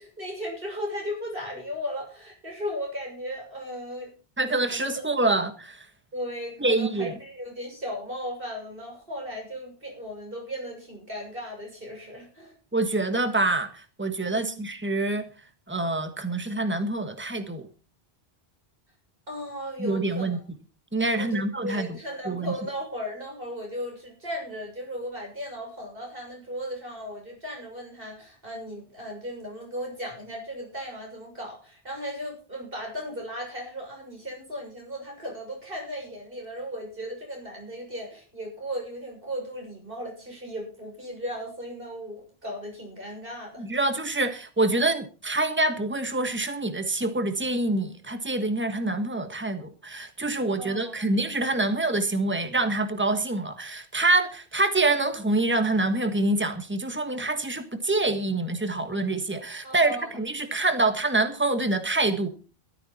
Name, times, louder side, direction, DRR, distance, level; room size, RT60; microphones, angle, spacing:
voice 1, 0.0-4.1 4.5-4.8 6.1-12.5 14.3-14.6 19.3-20.4 21.1-43.6 50.6-51.1 59.6-60.1, equal, 60° right, 0 dB, 7.1 m, -36 dB
voice 2, 4.4-5.9 6.6-7.1 12.7-15.3 15.7-17.7 19.8-20.4 20.9-22.0 22.3-22.5 43.6-62.3, right 2 dB, 10° right, 8 dB, 1.5 m, -26 dB
15.5 x 13.0 x 4.3 m, 0.35 s
omnidirectional pair, 1.1 m